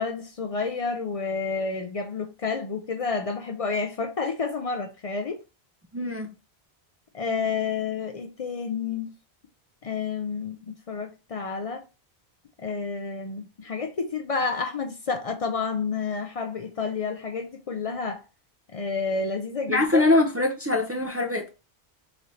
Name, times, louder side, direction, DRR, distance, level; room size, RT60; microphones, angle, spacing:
voice 1, 0.0-5.4 7.1-9.1 9.8-11.8 12.6-18.2 18.7-20.1, left 4 dB, 50° left, 0.4 m, -30 dB
voice 2, 5.9-6.3 19.7-21.5, left 2 dB, 25° right, 0.3 m, -23 dB
4.0 x 2.7 x 3.1 m
omnidirectional pair, 1.1 m